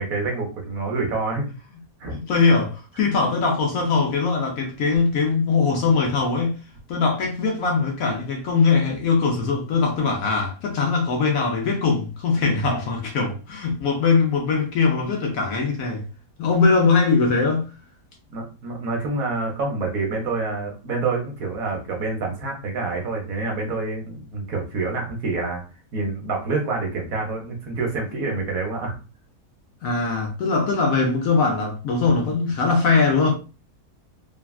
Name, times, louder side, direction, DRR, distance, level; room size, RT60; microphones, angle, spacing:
voice 1, 0.0-1.5 2.0-2.2 2.9-3.0 18.3-25.6 25.9-29.0, right 3 dB, 65° right, 1.1 m, -27 dB
voice 2, 2.1-6.6 6.9-16.0 16.4-17.7 29.8-33.3, left 4 dB, 65° left, 1.0 m, -21 dB
3.4 x 2.3 x 2.3 m
omnidirectional pair, 1.8 m